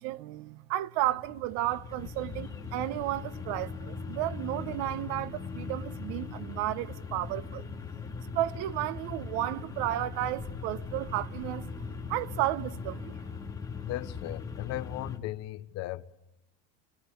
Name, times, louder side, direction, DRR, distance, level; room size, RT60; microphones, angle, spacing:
voice 1, 0.0-7.7 8.3-11.7 12.1-13.1, right 15 dB, 80° right, 1.1 m, -33 dB
sound 1, 1.0-15.2, left 5 dB, 10° left, 2.6 m, -40 dB
voice 2, 13.8-16.1, left 16 dB, 50° left, 1.0 m, -37 dB
28.5 x 21.5 x 8.4 m
cardioid pair, 180°, 32 cm